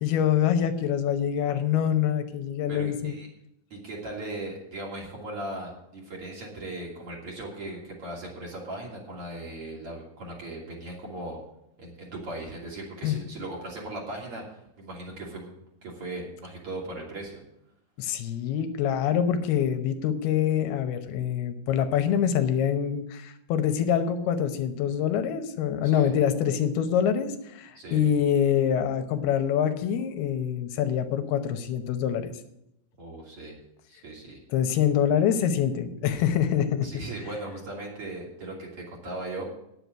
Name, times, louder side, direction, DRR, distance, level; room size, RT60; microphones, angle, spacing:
voice 1, 0.0-3.1 13.0-13.2 18.0-32.3 34.5-36.9, left 9 dB, 80° left, 8 dB, 2.9 m, -25 dB
voice 2, 2.7-3.3 3.7-11.4 11.8-14.4 14.8-15.5 15.8-17.4 25.9-26.1 27.8-28.0 33.0-33.6 33.9-34.4 36.8-39.4, right 2 dB, 40° right, -2 dB, 3.5 m, -38 dB
10.0 x 8.0 x 8.1 m, 0.80 s
omnidirectional pair, 4.6 m